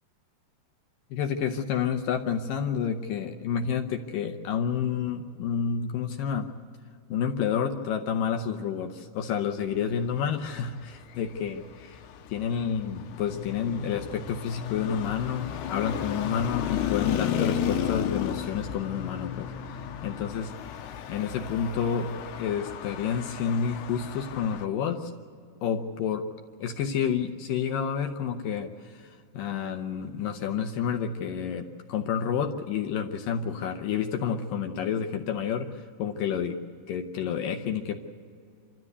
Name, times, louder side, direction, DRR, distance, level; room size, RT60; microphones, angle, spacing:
voice 1, 1.1-6.5 7.1-12.0 12.3-20.5 21.1-25.1 25.6-26.3 26.6-36.6 36.9-38.0, left 7 dB, 70° left, 5 dB, 2.2 m, -29 dB
Traffic noise roadway noise, 10.9-24.7, left 9 dB, 90° left, 3.1 m, -34 dB
27.5 x 13.5 x 8.0 m, 2.3 s
omnidirectional pair, 4.8 m